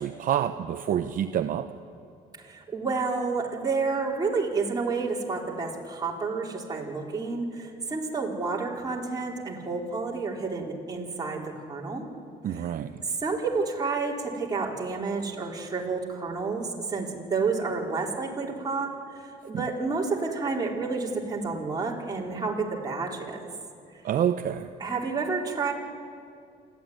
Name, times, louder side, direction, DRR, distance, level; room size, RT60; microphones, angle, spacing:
voice 1, 0.0-1.7 12.4-13.0 19.5-19.6 24.0-24.7, right 9 dB, 55° right, 8 dB, 0.8 m, -27 dB
voice 2, 2.4-12.1 13.1-23.5 24.8-25.7, right 4 dB, 25° right, -2 dB, 4.1 m, -30 dB
27.5 x 13.5 x 9.5 m, 2.4 s
cardioid pair, 110°, 17 cm